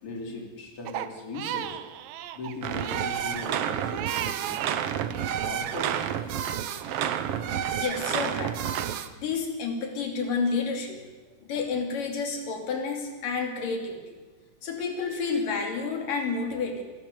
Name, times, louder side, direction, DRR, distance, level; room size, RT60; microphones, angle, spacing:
voice 1, 0.0-1.8 2.3-4.7 5.4-6.1, left 2 dB, 45° left, 2 dB, 3.8 m, -39 dB
Crying sobbing, 0.9-4.8 5.1-6.2, right 12 dB, 85° right, 2.6 m, -36 dB
sound 1, 2.6-9.1, right 9 dB, 70° right, 1.5 m, -30 dB
voice 2, 7.7-8.6 9.2-11.0 11.4-14.1 14.6-16.8, left 4 dB, 75° left, 3 dB, 4.5 m, -30 dB
28.5 x 12.0 x 8.1 m, 1.3 s
omnidirectional pair, 3.8 m